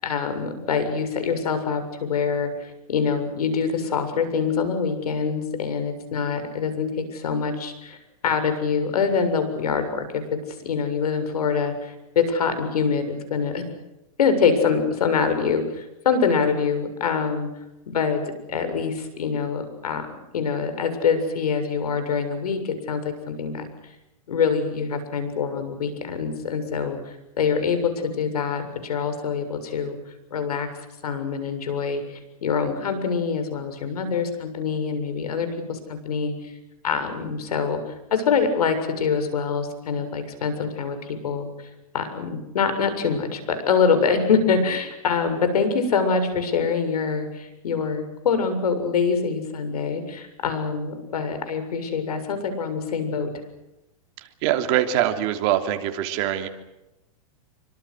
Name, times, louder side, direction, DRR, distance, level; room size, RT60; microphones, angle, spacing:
voice 1, 0.0-8.0 8.2-10.2 10.6-13.6 14.2-17.5 17.9-18.2 18.5-20.1 20.3-23.6 24.3-30.0 30.3-30.7 31.0-36.5 36.8-37.8 38.1-41.5 41.9-53.3, left 5 dB, 85° left, 9 dB, 7.2 m, -25 dB
voice 2, 54.4-56.5, right 12 dB, 40° right, 5 dB, 3.2 m, -23 dB
27.5 x 25.0 x 6.4 m, 0.94 s
supercardioid pair, 150°, 19 cm